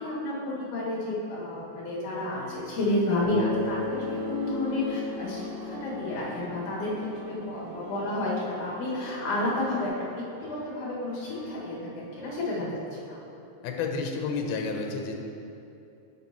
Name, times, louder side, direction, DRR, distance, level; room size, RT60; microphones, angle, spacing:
voice 1, 0.0-12.7 13.0-13.2, left 2 dB, 60° left, -7 dB, 3.2 m, -31 dB
sound 1, 2.3-5.0 5.7-8.7 9.1-12.3, equal, 25° right, 1.0 m, -49 dB
Bass guitar, 3.2-7.6, left 2 dB, 50° right, 1.7 m, -35 dB
sound 2, 3.2-9.9, right 1 dB, 80° right, 1.3 m, -44 dB
voice 2, 13.6-15.2, left 4 dB, 85° left, 3 dB, 2.5 m, -30 dB
9.4 x 7.2 x 3.0 m, 2.7 s
omnidirectional pair, 4.4 m